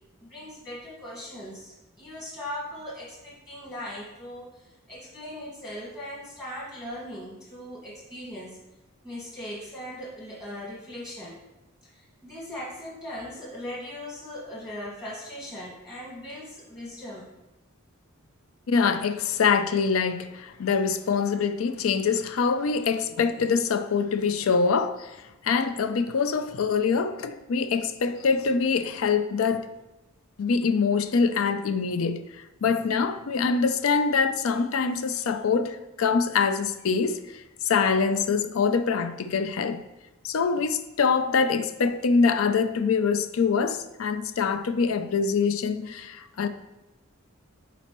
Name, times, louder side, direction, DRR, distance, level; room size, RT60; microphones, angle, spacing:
voice 1, 0.2-8.6 9.0-11.4 11.9-17.3, left 1 dB, 15° left, 1.6 m, -39 dB
voice 2, 18.7-25.2 25.4-29.7 30.4-32.2 32.6-37.2 37.6-39.8 40.2-46.5, left 5 dB, 75° left, 0.4 m, -24 dB
8.7 x 4.0 x 3.0 m
head